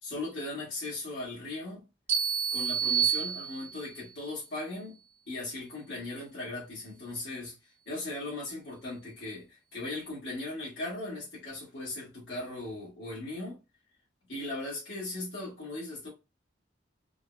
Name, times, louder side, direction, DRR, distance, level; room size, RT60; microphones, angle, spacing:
voice 1, 0.0-1.8 2.5-7.5 7.8-13.6 14.3-16.1, left 2 dB, 75° left, 1.5 m, -38 dB
sound 1, 2.1-4.0, right 8 dB, 35° right, 0.9 m, -29 dB
3.8 x 2.1 x 2.4 m
head